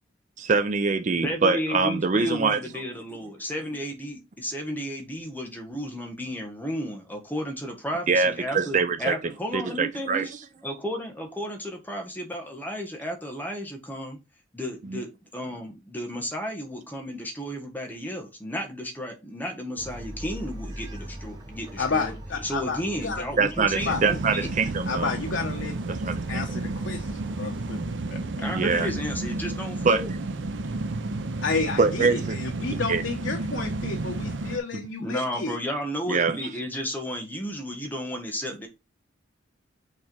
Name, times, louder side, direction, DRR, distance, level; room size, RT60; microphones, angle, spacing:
voice 1, 0.4-2.6 8.1-9.1 9.5-10.3 14.9-15.0 23.4-25.1 25.9-26.6 28.6-28.9 29.8-30.0 31.8-32.4 32.9-33.0 34.7-34.8 36.1-36.5, right 4 dB, 40° right, 0.5 m, -24 dB
voice 2, 1.2-10.3 10.6-14.2 14.5-22.1 22.4-24.5 28.4-30.1 35.0-38.7, equal, 10° left, 1.5 m, -33 dB
Bark, 19.8-28.0, right 1 dB, 20° right, 2.1 m, -41 dB
voice 3, 21.8-23.3 23.9-24.0 24.9-25.8 26.3-27.8 28.1-28.2 28.7-28.9 31.4-35.6, left 4 dB, 80° left, 1.0 m, -31 dB
sound 1, 23.8-34.6, right 2 dB, 75° right, 0.7 m, -32 dB
6.4 x 3.6 x 4.6 m
head